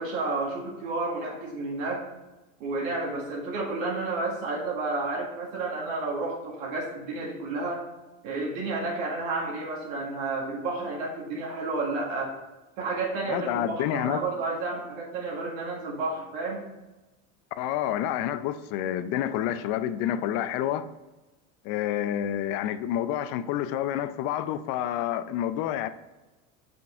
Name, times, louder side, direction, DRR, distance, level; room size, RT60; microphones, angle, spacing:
voice 1, 0.0-2.0 2.6-7.8 8.2-12.4 12.8-16.7, right 3 dB, 70° right, 2.1 m, -31 dB
voice 2, 13.3-14.2 17.6-20.9 21.6-25.9, left 11 dB, 55° left, 0.7 m, -28 dB
5.8 x 5.4 x 5.0 m
hypercardioid pair, 90°, 42 cm